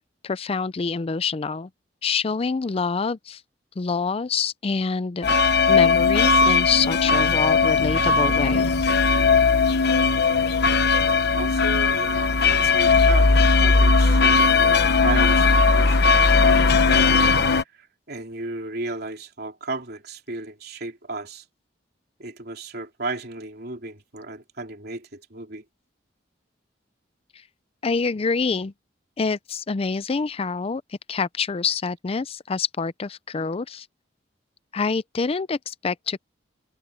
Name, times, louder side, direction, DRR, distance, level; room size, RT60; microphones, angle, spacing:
voice 1, 0.0-1.7 2.0-3.4 3.8-8.7 27.8-28.7 29.2-30.8 31.1-33.9 34.7-36.2, left 5 dB, 35° left, 0.4 m, -26 dB
sound 1, 5.2-17.6, left 4 dB, 65° left, 1.1 m, -18 dB
voice 2, 10.7-11.1 11.3-17.2 17.8-21.4 22.2-25.6, right 2 dB, 60° right, 3.2 m, -34 dB
head